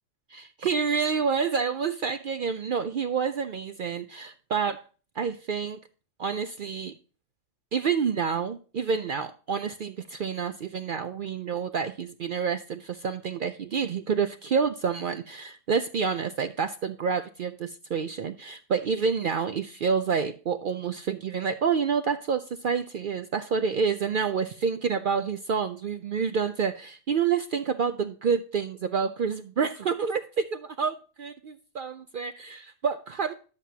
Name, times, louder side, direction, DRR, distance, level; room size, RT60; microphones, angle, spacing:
voice 1, 0.3-4.8 5.2-5.8 6.2-6.9 7.7-33.3, right 6 dB, 60° right, 0.5 m, -28 dB
11.5 x 7.5 x 2.8 m
omnidirectional pair, 1.3 m